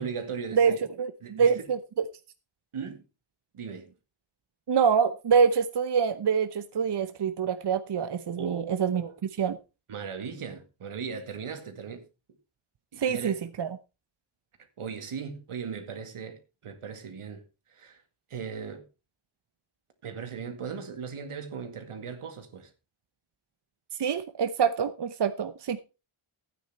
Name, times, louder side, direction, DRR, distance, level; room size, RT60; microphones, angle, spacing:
voice 1, 0.0-0.8 1.2-1.5 2.7-3.0 3.5-3.9 8.3-9.2 9.9-12.1 12.9-13.4 14.8-17.4 17.7-18.0 18.3-18.8 20.0-22.7, right 6 dB, 85° right, 2.2 m, -38 dB
voice 2, 0.5-1.8 4.7-9.0 9.4-9.6 13.0-13.7 24.0-25.8, right 6 dB, 55° right, 0.8 m, -25 dB
12.5 x 9.2 x 4.2 m
cardioid pair, 70°, 49 cm